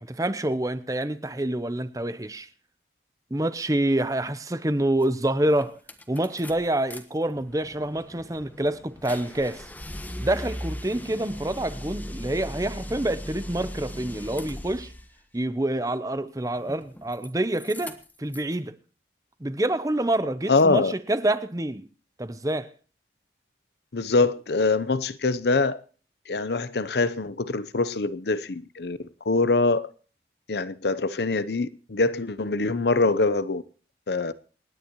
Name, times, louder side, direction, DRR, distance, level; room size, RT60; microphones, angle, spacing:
voice 1, 0.0-2.5 3.3-5.8 6.1-9.7 10.2-14.9 15.3-18.7 19.4-21.9 22.2-22.7, right 1 dB, 20° right, 0.7 m, -27 dB
sound 1, 5.0-5.1 5.5-7.0 7.3-15.1 16.6-17.3 17.5-18.5, equal, 10° left, 1.1 m, -38 dB
voice 2, 20.5-20.9 23.9-25.8 26.3-29.9 30.5-33.6 34.1-34.3, left 3 dB, 65° left, 0.7 m, -24 dB
28.0 x 10.0 x 3.0 m
head